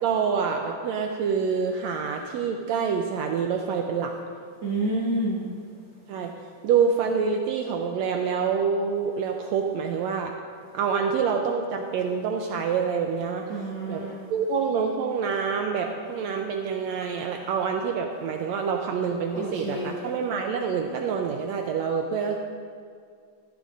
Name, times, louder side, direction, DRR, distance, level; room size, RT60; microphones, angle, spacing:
voice 1, 0.0-4.1 6.1-6.3 6.6-10.3 10.7-13.4 13.9-22.4, right 6 dB, 85° right, 3 dB, 1.6 m, -26 dB
voice 2, 4.6-5.4 13.5-14.2 19.3-19.9, right 1 dB, 50° right, -7 dB, 1.6 m, -28 dB
14.0 x 13.5 x 2.5 m, 2.2 s
omnidirectional pair, 3.7 m